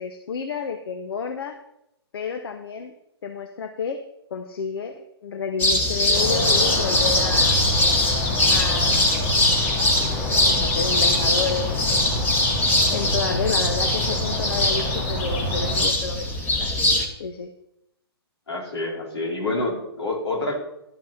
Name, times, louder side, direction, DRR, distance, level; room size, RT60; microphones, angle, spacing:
voice 1, 0.0-1.6 2.1-2.9 3.2-4.0 4.3-7.6 8.5-9.2 10.2-12.2 12.9-16.7 17.2-17.5, left 5 dB, 65° left, 8 dB, 1.0 m, -30 dB
sound 1, 5.6-17.1, left 1 dB, 15° left, 1.7 m, -22 dB
sound 2, 6.1-15.9, left 1 dB, 45° left, 3.4 m, -28 dB
voice 2, 18.5-20.6, left 2 dB, 80° left, -1 dB, 4.5 m, -27 dB
12.5 x 6.1 x 5.9 m, 0.81 s
hypercardioid pair, 135°, 14 cm